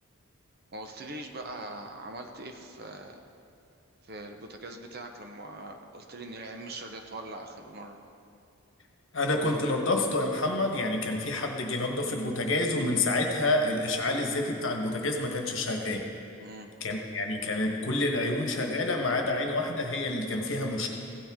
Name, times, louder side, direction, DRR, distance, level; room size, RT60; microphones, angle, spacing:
voice 1, 0.7-3.2 4.0-8.0 16.4-16.7, right 2 dB, 45° right, 4 dB, 0.8 m, -42 dB
voice 2, 9.1-16.1 16.8-20.9, left 2 dB, 65° left, 2 dB, 1.3 m, -28 dB
16.0 x 8.9 x 3.6 m, 2.6 s
head